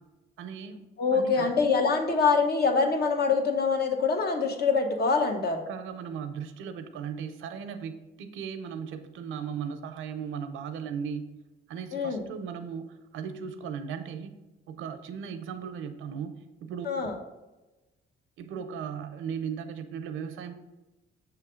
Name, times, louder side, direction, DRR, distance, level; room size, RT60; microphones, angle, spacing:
voice 1, 0.4-0.8 1.1-1.5 5.7-11.4 11.7-14.4 14.7-16.9 18.4-20.5, right 7 dB, 85° right, 9 dB, 0.6 m, -37 dB
voice 2, 1.0-5.6 11.9-12.2 16.8-17.2, left 4 dB, 55° left, 4 dB, 1.0 m, -25 dB
6.8 x 3.2 x 5.0 m, 1.1 s
cardioid pair, 90°, 20 cm